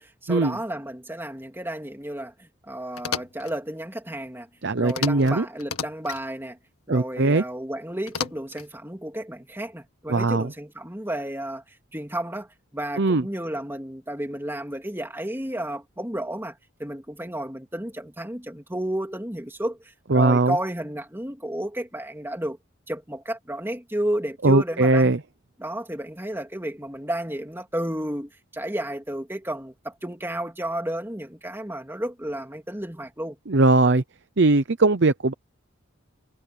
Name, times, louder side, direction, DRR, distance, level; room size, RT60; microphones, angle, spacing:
voice 1, 0.0-4.5 4.8-6.6 6.9-22.6 22.9-25.2 25.6-33.4, right 1 dB, 10° right, 3.0 m, -32 dB
sound 1, 2.9-3.5 4.9-5.3 5.6-6.2 8.1-8.7, left 7 dB, 90° left, 2.0 m, -32 dB
voice 2, 4.6-5.4 6.9-7.4 10.1-10.5 13.0-13.2 20.1-20.6 24.4-25.2 33.5-34.0 34.4-35.3, right 2 dB, 55° right, 0.7 m, -19 dB
head